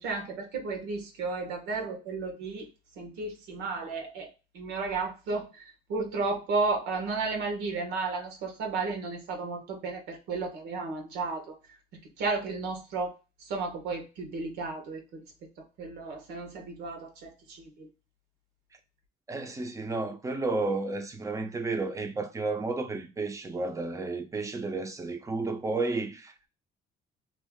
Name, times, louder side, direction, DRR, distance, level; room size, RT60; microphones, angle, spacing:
voice 1, 0.0-2.7 3.0-4.3 4.5-11.5 12.2-13.2 13.4-15.2 15.8-17.9, right 3 dB, 90° right, 1.1 m, -33 dB
voice 2, 19.3-26.5, right 3 dB, 20° right, 0.6 m, -32 dB
2.6 x 2.5 x 3.5 m
cardioid pair, 110°, 17 cm